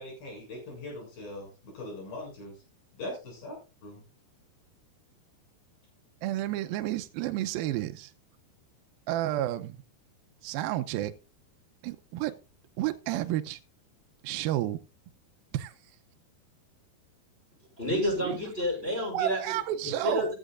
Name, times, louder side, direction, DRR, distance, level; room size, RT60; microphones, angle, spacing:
voice 1, 0.0-2.5 2.9-3.5 3.8-4.0, left 1 dB, 55° left, 9.0 m, -41 dB
voice 2, 6.2-8.1 9.1-9.8 10.4-11.1 11.8-12.4 12.8-13.6 14.2-14.8 15.5-15.7 18.2-18.4 19.1-20.3, right 13 dB, 80° right, 2.2 m, -31 dB
voice 3, 17.8-19.4 20.0-20.3, left 1 dB, 15° left, 6.1 m, -29 dB
14.5 x 12.5 x 2.5 m
omnidirectional pair, 4.9 m